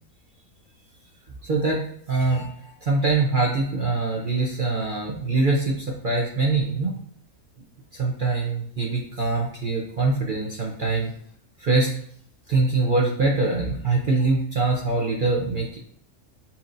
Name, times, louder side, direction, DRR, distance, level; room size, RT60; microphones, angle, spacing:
voice 1, 1.4-6.9 7.9-11.1 11.6-12.0 12.5-15.8, right 3 dB, 45° right, -2 dB, 0.7 m, -23 dB
7.1 x 2.8 x 2.5 m, 0.62 s
omnidirectional pair, 1.5 m